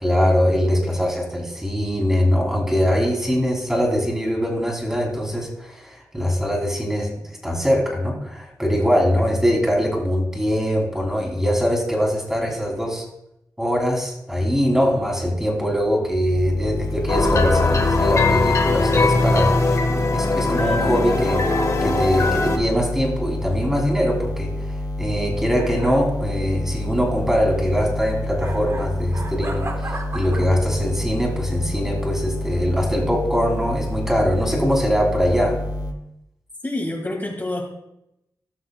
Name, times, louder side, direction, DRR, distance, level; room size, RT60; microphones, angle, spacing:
voice 1, 0.0-13.0 13.6-19.8 20.1-35.6, equal, 5° right, -1 dB, 2.8 m, -22 dB
sound 1, 16.3-35.9, left 1 dB, 70° left, 1.1 m, -28 dB
sound 2, 17.1-22.6, left 3 dB, 50° left, 1.2 m, -20 dB
sound 3, 25.6-26.1 28.4-30.6, right 2 dB, 40° right, 0.9 m, -35 dB
voice 2, 36.6-37.7, left 1 dB, 30° left, -1 dB, 1.7 m, -27 dB
17.0 x 6.1 x 2.2 m, 0.83 s
cardioid pair, 55°, 7 cm